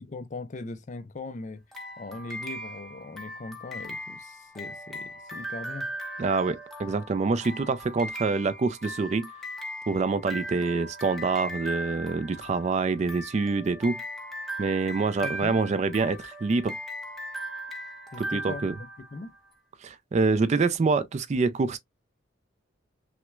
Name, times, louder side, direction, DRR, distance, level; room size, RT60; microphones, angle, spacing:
voice 1, 0.0-1.6 2.0-5.9 15.2-15.6 18.1-19.3, left 3 dB, 40° left, 0.5 m, -40 dB
sound 1, 1.7-19.4, right 1 dB, ahead, 0.8 m, -38 dB
voice 2, 6.2-9.3 9.9-14.0 14.6-16.8 18.2-18.7 19.8-21.8, right 4 dB, 35° right, 0.3 m, -26 dB
5.8 x 2.1 x 2.3 m
head